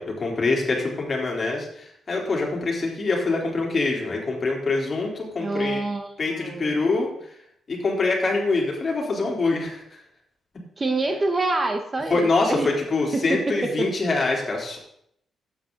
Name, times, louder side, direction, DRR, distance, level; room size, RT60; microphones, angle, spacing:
voice 1, 0.0-5.8 6.2-7.1 7.7-9.8 12.1-14.8, left 3 dB, 40° left, -1 dB, 3.4 m, -24 dB
voice 2, 5.4-6.8 10.8-12.7 13.1-13.9, right 2 dB, 25° right, 6 dB, 1.2 m, -27 dB
12.0 x 8.7 x 3.9 m, 0.71 s
cardioid pair, 95°, 0 cm